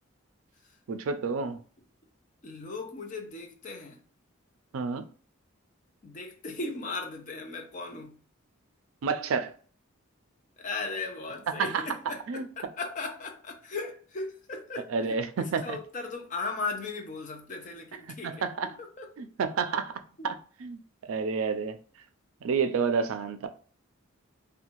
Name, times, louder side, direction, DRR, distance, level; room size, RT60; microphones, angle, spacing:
voice 1, 0.9-1.6 4.7-5.1 9.0-9.5 11.6-11.8 12.3-12.4 14.9-15.3 15.5-15.8 18.2-18.7 19.2-20.4 20.6-20.8 21.1-21.8 22.4-23.5, right 5 dB, 70° right, 0.4 m, -29 dB
voice 2, 2.4-4.0 6.0-8.2 10.6-19.1 20.2-20.3, left 3 dB, 35° left, 0.5 m, -37 dB
2.6 x 2.2 x 2.9 m
head